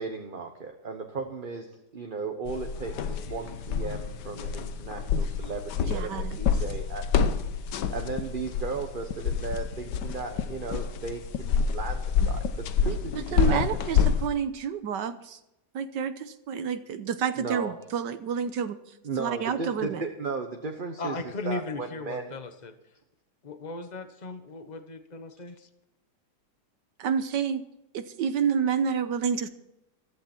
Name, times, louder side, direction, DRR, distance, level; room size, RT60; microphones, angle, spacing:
voice 1, 0.0-1.7 1.9-7.3 7.9-13.9 17.4-17.7 19.0-22.3, right 4 dB, 35° right, 4 dB, 1.1 m, -36 dB
sound 1, 2.5-14.3, left 7 dB, 75° left, 1.5 m, -28 dB
voice 2, 5.9-6.4 13.1-15.4 15.7-18.8 19.2-20.0 27.0-27.6 27.9-29.5, right 7 dB, 80° right, 11 dB, 1.5 m, -29 dB
voice 3, 21.0-22.7 23.4-25.7, left 3 dB, 25° left, 8 dB, 1.3 m, -37 dB
15.5 x 14.0 x 4.5 m, 0.88 s
omnidirectional pair, 1.9 m